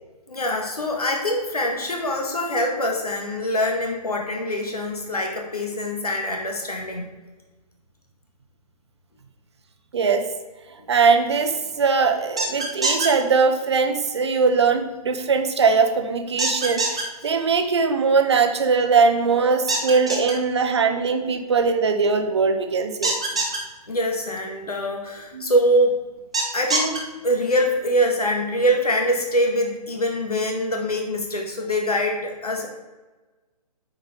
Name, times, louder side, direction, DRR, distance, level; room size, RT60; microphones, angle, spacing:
voice 1, 0.3-7.1 23.9-26.0 26.5-32.7, equal, 65° left, 1 dB, 2.0 m, -24 dB
voice 2, 9.9-10.3 10.9-23.2 25.3-25.5, right 5 dB, 40° right, 6 dB, 1.0 m, -20 dB
sound 1, 12.4-13.1 16.4-17.0 19.7-20.3 23.0-23.6 26.3-27.0, right 3 dB, 10° right, 0.3 m, -23 dB
8.4 x 5.1 x 5.2 m, 1.2 s
figure-of-eight pair, 140°, 20 cm